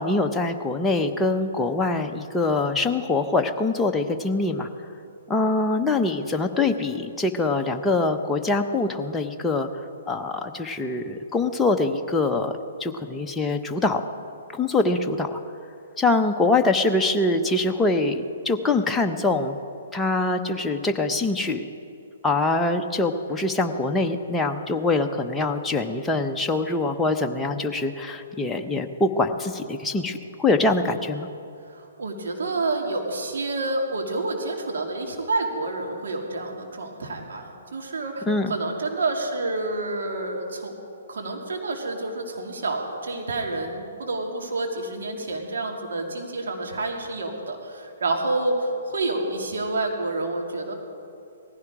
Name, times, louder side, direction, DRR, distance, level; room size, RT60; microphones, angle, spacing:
voice 1, 0.0-4.7 5.3-12.5 12.8-14.0 14.5-15.4 16.0-19.6 19.9-21.7 22.2-31.3 38.3-38.5, left 2 dB, 10° left, 4 dB, 0.8 m, -24 dB
voice 2, 31.7-40.7 41.1-50.7, right 2 dB, 65° right, 1 dB, 2.6 m, -28 dB
18.5 x 15.5 x 4.9 m, 2.6 s
figure-of-eight pair, 120°, 0 cm